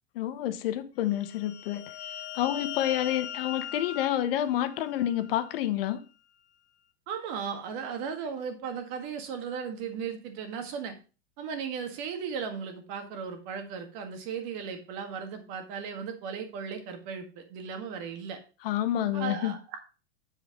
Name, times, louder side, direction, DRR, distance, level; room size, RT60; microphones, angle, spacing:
voice 1, 0.1-1.9 2.3-6.0 18.6-19.6, left 12 dB, 60° left, 1.0 m, -29 dB
sound 1, 1.1-5.6, left 10 dB, 80° left, 1.4 m, -40 dB
voice 2, 7.1-11.0 11.4-18.4 19.1-19.8, right 6 dB, 45° right, 1.8 m, -36 dB
7.7 x 5.0 x 5.0 m
supercardioid pair, 155°, 32 cm